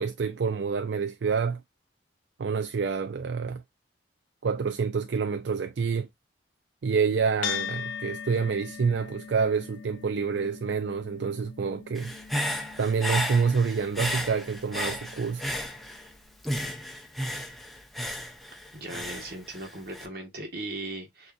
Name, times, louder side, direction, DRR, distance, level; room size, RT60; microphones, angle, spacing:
voice 1, 0.0-1.6 2.4-3.6 4.4-6.1 6.8-12.1 12.8-15.4, right 5 dB, 70° right, 0.4 m, -27 dB
sound 1, 7.4-16.1, left 8 dB, 85° left, 0.6 m, -40 dB
Human voice / Breathing, 11.9-16.1 16.4-20.1, equal, ahead, 0.5 m, -33 dB
voice 2, 18.7-21.3, right 2 dB, 55° right, 1.6 m, -38 dB
6.6 x 2.8 x 2.5 m
head